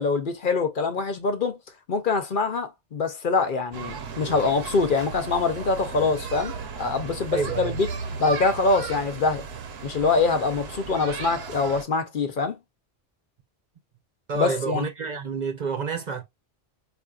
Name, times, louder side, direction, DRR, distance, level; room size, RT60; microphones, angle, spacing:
voice 1, 0.0-1.6 1.9-6.5 6.8-7.9 8.2-9.4 9.8-12.6 14.3-14.8, left 4 dB, 55° left, 0.9 m, -24 dB
sound 1, 3.7-11.8, right 5 dB, 75° right, 1.0 m, -35 dB
voice 2, 7.3-7.8 14.3-16.2, right 5 dB, 50° right, 0.8 m, -28 dB
5.0 x 2.6 x 2.3 m
omnidirectional pair, 1.1 m